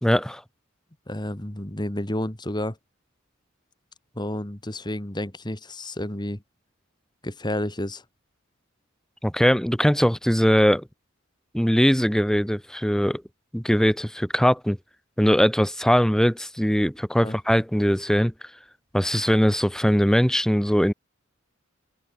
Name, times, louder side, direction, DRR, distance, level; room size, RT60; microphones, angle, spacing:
voice 1, 0.0-0.4 9.2-10.8 11.5-13.2 13.5-14.8 15.2-18.3 18.9-20.9, equal, 5° left, 1.3 m, -21 dB
voice 2, 1.1-2.8 4.1-6.4 7.2-8.0 17.2-17.4, left 1 dB, 20° left, 2.4 m, -30 dB
open air
head